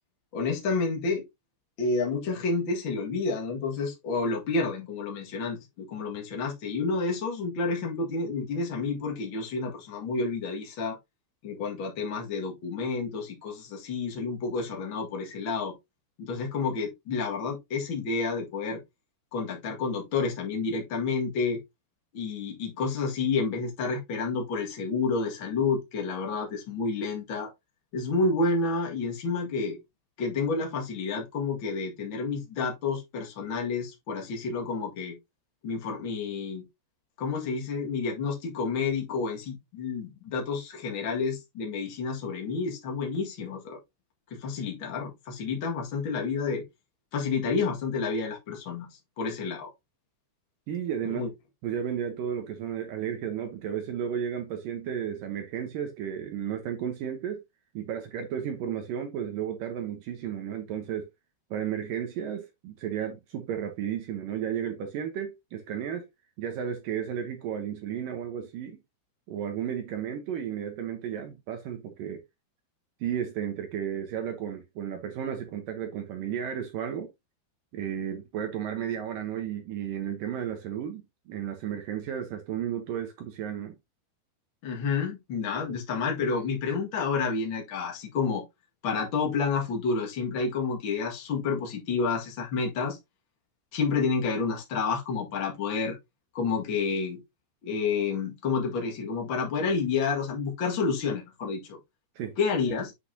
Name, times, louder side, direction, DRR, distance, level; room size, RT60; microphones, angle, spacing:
voice 1, 0.3-1.2 1.8-11.0 11.4-15.7 16.2-18.8 19.3-21.6 22.1-27.5 27.9-29.8 30.2-35.1 35.6-36.6 37.2-43.8 44.3-46.6 47.1-48.9 49.2-49.7 51.0-51.3 84.6-88.4 88.8-93.0 93.7-96.0 96.3-97.2 97.6-101.8 102.4-102.9, left 4 dB, 50° left, 1.4 m, -29 dB
voice 2, 50.7-51.2 51.6-57.4 57.7-61.1 61.5-66.1 66.4-68.8 69.3-72.2 73.0-77.1 77.7-83.8 85.7-85.8 102.2-102.4, right 9 dB, 75° right, 2.1 m, -33 dB
8.1 x 5.9 x 2.7 m
omnidirectional pair, 5.1 m